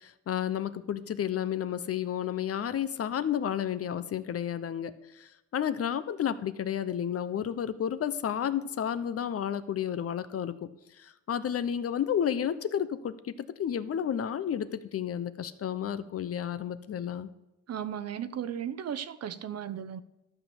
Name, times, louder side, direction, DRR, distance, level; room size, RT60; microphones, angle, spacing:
voice 1, 0.0-10.7 11.0-17.3, left 9 dB, 50° left, 0.8 m, -31 dB
voice 2, 17.7-20.0, right 9 dB, 55° right, 0.8 m, -35 dB
13.0 x 6.0 x 7.1 m
cardioid pair, 90°, 30 cm